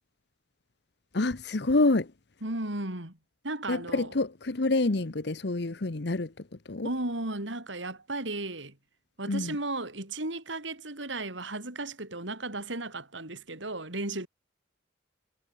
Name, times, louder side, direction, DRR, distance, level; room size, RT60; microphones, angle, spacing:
voice 1, 1.1-2.1 3.7-6.3 6.7-6.9 9.3-9.6, left 2 dB, 60° left, 1.0 m, -27 dB
voice 2, 2.4-3.2 3.4-4.1 6.8-8.8 9.2-14.3, right 2 dB, 75° right, 5.0 m, -35 dB
head